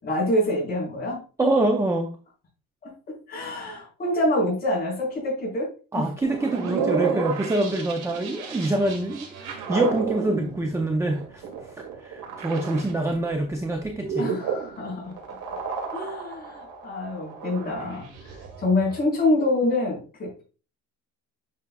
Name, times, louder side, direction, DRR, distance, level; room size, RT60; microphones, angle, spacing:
voice 1, 0.0-1.2 2.8-2.9 3.3-5.7 5.9-6.1 14.2-15.1 15.9-18.3 18.6-20.4, left 1 dB, 25° left, -3 dB, 4.0 m, -26 dB
voice 2, 1.4-2.2 5.9-9.3 9.7-11.4 11.7-14.3, right 2 dB, 10° right, 3 dB, 0.5 m, -25 dB
sound 1, 6.2-13.1 13.5-19.0, right 6 dB, 70° right, 2.4 m, -32 dB
9.5 x 5.8 x 2.3 m, 0.36 s
cardioid pair, 180°, 34 cm